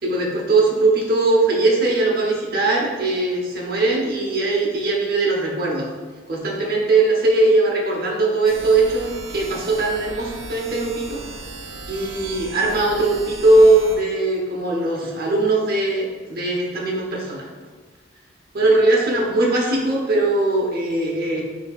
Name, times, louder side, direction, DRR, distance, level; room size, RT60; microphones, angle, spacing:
voice 1, 0.0-5.9 6.3-11.2 11.9-17.5 18.5-21.4, right 2 dB, 50° right, -2 dB, 0.9 m, -20 dB
sound 1, 8.4-14.0, right 3 dB, 80° right, 0.6 m, -36 dB
7.1 x 2.8 x 2.4 m, 1.4 s
head